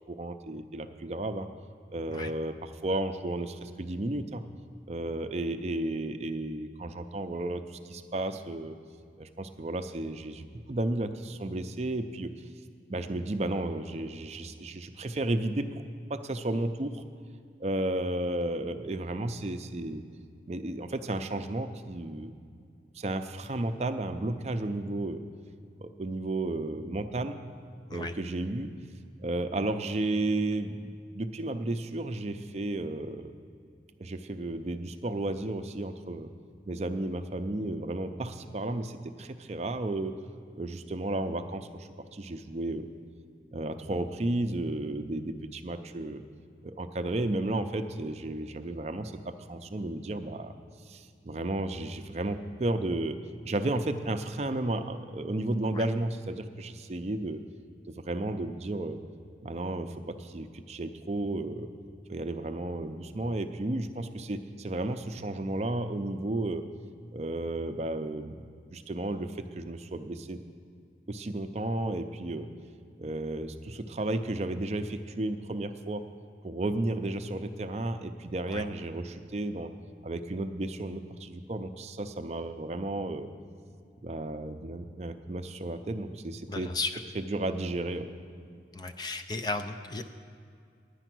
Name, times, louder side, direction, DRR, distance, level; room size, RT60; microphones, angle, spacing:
voice 1, 0.1-1.5 1.9-4.4 4.9-8.8 9.2-12.3 12.9-15.8 16.1-17.0 17.6-20.0 20.5-22.3 22.9-25.2 25.8-27.4 27.9-28.7 29.2-33.3 34.0-36.3 36.7-40.2 40.6-42.9 43.5-46.2 46.6-50.5 50.9-57.4 57.9-59.0 59.4-61.7 62.1-66.6 67.1-68.4 68.7-70.4 71.1-72.5 73.0-76.1 76.4-79.7 80.0-83.3 84.0-86.7 87.1-88.1, right 2 dB, 40° right, 8 dB, 0.5 m, -33 dB
voice 2, 86.5-86.9 88.7-90.0, left 3 dB, 25° left, 8 dB, 0.4 m, -34 dB
10.0 x 10.0 x 6.0 m, 2.3 s
head